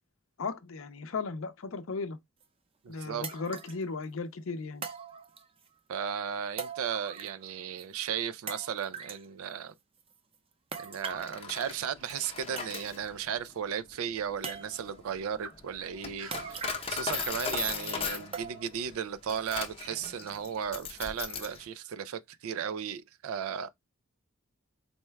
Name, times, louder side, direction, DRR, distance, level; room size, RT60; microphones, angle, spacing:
voice 1, 0.4-2.2 2.9-4.8, left 4 dB, 70° left, 0.6 m, -36 dB
sound 1, 2.4-2.5 3.2-3.8 4.8-5.7 6.6-7.5 7.8-7.9 8.5-9.3 10.7-11.4 12.2-12.3 12.6-13.1 13.5-13.6 14.4-15.0 16.3-17.1 17.4-17.5 18.3-18.9 19.3-19.4 20.0-20.1, right 5 dB, 25° right, 0.5 m, -41 dB
voice 2, 2.8-3.3 5.9-9.7 10.8-23.7, right 8 dB, 85° right, 0.4 m, -35 dB
Coin (dropping), 11.1-21.6, left 5 dB, 30° left, 0.6 m, -38 dB
sound 2, 12.0-12.4 12.6-13.3 15.2-15.6 16.2-16.5 17.1-17.4 18.0-18.3, right 4 dB, 70° right, 0.8 m, -47 dB
4.2 x 2.2 x 3.2 m
head